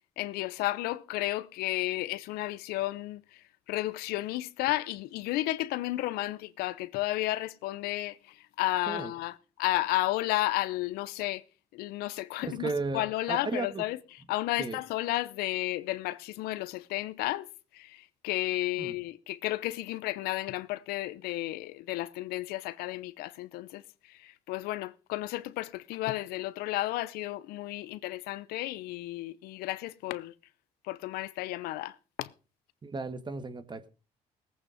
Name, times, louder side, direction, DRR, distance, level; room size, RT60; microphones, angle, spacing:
voice 1, 0.2-3.2 3.7-8.1 8.6-9.3 9.6-11.4 11.7-14.0 14.3-17.5 18.2-23.8 24.5-30.3 30.9-31.9 32.2-32.3, left 17 dB, 90° left, 0.7 m, -32 dB
voice 2, 12.4-13.8 14.6-14.8 18.8-19.0 32.8-33.9, right 3 dB, 30° right, 1.7 m, -35 dB
19.0 x 8.7 x 5.0 m
cardioid pair, 85°, 16 cm